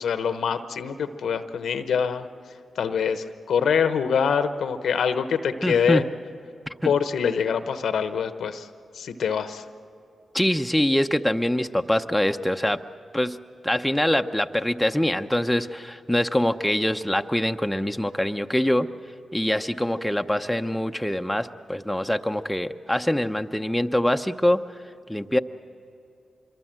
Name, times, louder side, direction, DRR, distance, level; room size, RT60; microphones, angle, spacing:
voice 1, 0.0-2.3 2.8-6.0 6.8-8.7 8.9-9.6, left 7 dB, 80° left, 10 dB, 1.0 m, -24 dB
voice 2, 5.6-6.0 6.8-6.9 10.3-12.8 13.1-13.4 13.6-18.9 19.3-24.6 25.1-25.4, left 1 dB, 5° left, 6 dB, 0.9 m, -24 dB
26.0 x 23.0 x 7.6 m, 2.6 s
supercardioid pair, 45°, 0 cm